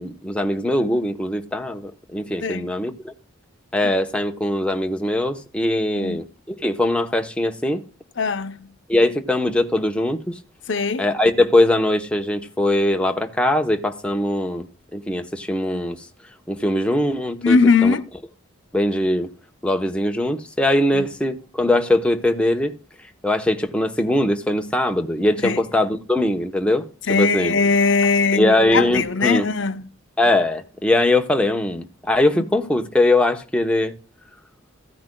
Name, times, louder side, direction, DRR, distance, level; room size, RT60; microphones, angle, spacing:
voice 1, 0.0-3.1 3.7-7.8 8.9-10.4 11.0-14.7 14.9-16.1 16.5-17.9 18.7-19.3 19.6-22.7 23.2-26.8 27.1-27.5 28.3-29.5 30.2-33.9, left 1 dB, 5° left, 0.9 m, -21 dB
voice 2, 2.4-2.7 5.9-6.2 8.2-8.8 10.7-11.1 17.4-18.1 20.9-21.1 25.4-25.6 27.1-29.8 32.3-32.4, left 4 dB, 60° left, 0.7 m, -20 dB
15.0 x 10.0 x 2.2 m
head